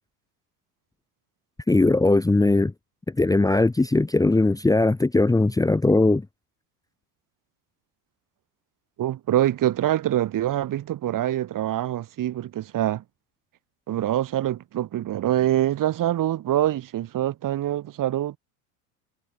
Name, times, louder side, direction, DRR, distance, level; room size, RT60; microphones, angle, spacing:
voice 1, 1.7-2.7 3.2-6.2, left 2 dB, 10° left, 1.2 m, -19 dB
voice 2, 9.0-13.0 13.9-18.4, right 12 dB, 45° right, 2.8 m, -25 dB
hypercardioid pair, 90°, 46 cm